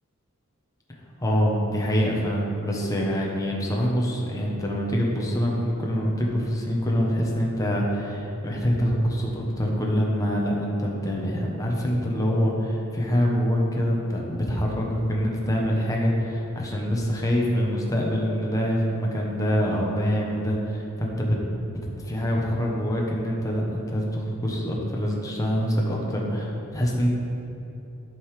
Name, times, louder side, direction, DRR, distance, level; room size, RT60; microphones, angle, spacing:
voice 1, 1.2-21.4 22.0-27.1, equal, 15° left, -3 dB, 1.2 m, -25 dB
12.5 x 5.5 x 5.0 m, 3.0 s
head